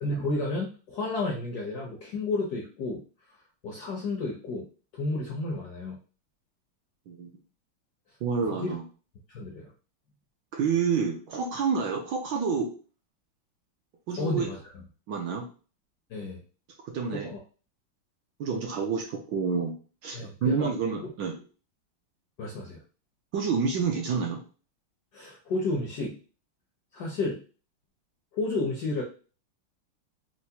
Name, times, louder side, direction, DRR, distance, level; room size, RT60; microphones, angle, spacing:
voice 1, 0.0-3.0 3.6-4.7 4.9-6.0 8.5-8.7 9.3-9.7 14.2-14.6 16.1-16.4 17.1-17.4 20.1-20.7 21.0-21.1 22.4-22.8 25.1-26.1 26.9-27.4 28.3-29.0, left 2 dB, 70° left, -1 dB, 0.9 m, -31 dB
voice 2, 8.2-8.8 10.5-12.7 14.1-14.5 15.1-15.5 16.8-17.3 18.4-19.7 20.0-21.4 23.3-24.4, right 5 dB, 70° right, 1 dB, 1.1 m, -28 dB
4.6 x 2.0 x 2.7 m, 0.36 s
omnidirectional pair, 2.4 m